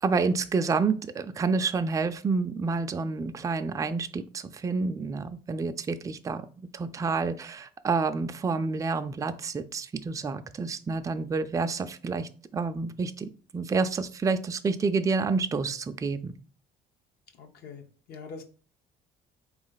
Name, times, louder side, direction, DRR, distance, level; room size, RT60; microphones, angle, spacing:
voice 1, 0.0-16.4, right 4 dB, 20° right, 8 dB, 0.4 m, -29 dB
voice 2, 17.4-17.8 18.1-18.4, left 4 dB, 70° left, 4 dB, 1.0 m, -42 dB
4.3 x 3.1 x 3.9 m, 0.38 s
cardioid pair, 110°, 17 cm